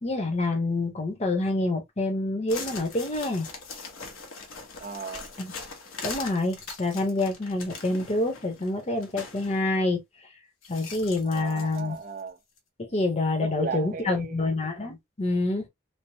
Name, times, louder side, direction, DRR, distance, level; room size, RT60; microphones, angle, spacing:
voice 1, 0.0-3.5 5.4-5.5 6.0-10.0 10.7-12.0 12.8-15.7, left 2 dB, 30° left, 0.7 m, -27 dB
sound 1, 2.5-9.6 10.6-12.2 12.6-12.7, left 4 dB, 80° left, 0.9 m, -41 dB
voice 2, 4.8-5.3 11.2-12.4 13.4-14.5, right 5 dB, 40° right, 0.5 m, -35 dB
3.2 x 2.0 x 2.6 m
head